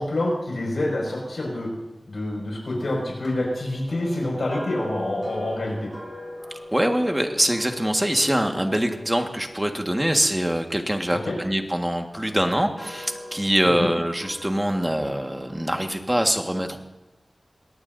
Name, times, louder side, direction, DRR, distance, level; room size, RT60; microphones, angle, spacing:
voice 1, 0.0-1.7 2.1-5.9 11.1-11.4 13.8-13.9, left 1 dB, 90° left, -2 dB, 5.7 m, -27 dB
sound 1, 3.2-11.4 12.1-15.6, left 1 dB, 10° left, 7.0 m, -42 dB
voice 2, 6.7-11.2 11.4-16.8, equal, 15° right, 4 dB, 1.6 m, -24 dB
22.5 x 18.0 x 2.7 m, 1.0 s
wide cardioid pair, 75°, 0 cm